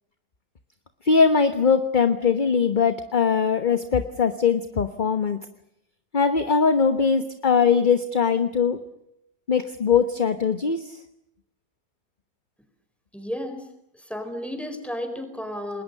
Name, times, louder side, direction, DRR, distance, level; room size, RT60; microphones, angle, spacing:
voice 1, 1.0-5.4 6.1-8.8 9.5-11.0, left 6 dB, 35° left, 9 dB, 1.2 m, -21 dB
voice 2, 13.1-13.7 13.9-15.8, left 1 dB, ahead, 7 dB, 4.4 m, -33 dB
30.0 x 21.0 x 6.6 m, 0.77 s
omnidirectional pair, 1.6 m